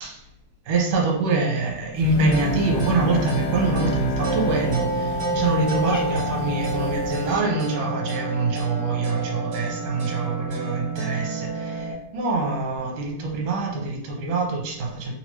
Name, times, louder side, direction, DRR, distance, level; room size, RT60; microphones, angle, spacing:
voice 1, 0.7-15.1, right 3 dB, 75° right, 0 dB, 1.9 m, -25 dB
Cat, 1.9-7.3, right 2 dB, 65° left, 1.0 m, -35 dB
Bowed string instrument, 2.0-6.6, equal, 80° left, 1.9 m, -30 dB
sound 1, 2.3-11.9, right 1 dB, 50° right, 1.9 m, -29 dB
4.3 x 2.9 x 3.0 m, 0.78 s
omnidirectional pair, 3.3 m